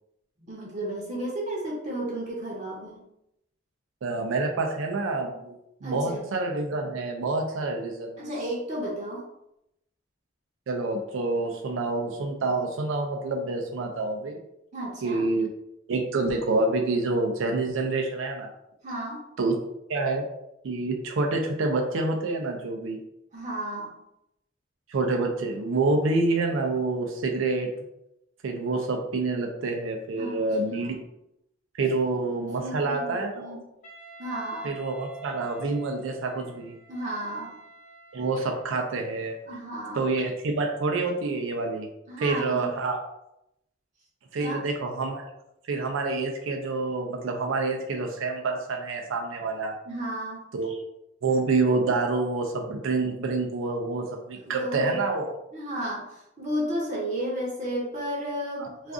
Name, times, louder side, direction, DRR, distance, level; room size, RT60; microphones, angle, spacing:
voice 1, 0.4-3.0 5.8-6.2 8.2-9.2 14.7-15.3 18.8-19.2 23.3-23.9 30.2-31.0 32.6-33.6 34.2-34.7 36.9-37.6 39.5-40.0 42.1-42.7 44.4-44.6 49.9-50.4 54.4-55.0 55.5-58.9, right 1 dB, 40° right, -3 dB, 0.7 m, -33 dB
voice 2, 4.0-8.2 10.7-14.4 15.0-15.5 15.9-18.5 19.4-19.6 19.9-20.3 20.6-23.0 24.9-27.7 28.4-31.0 31.7-33.6 34.6-36.8 38.1-39.4 40.0-41.9 42.2-43.0 44.3-45.2 45.7-49.8 50.5-50.8 51.2-55.3 58.6-58.9, right 3 dB, 85° right, 3 dB, 0.4 m, -27 dB
Wind instrument woodwind instrument, 33.8-38.8, right 5 dB, 40° left, 0.7 m, -47 dB
2.4 x 2.4 x 3.6 m, 0.83 s
head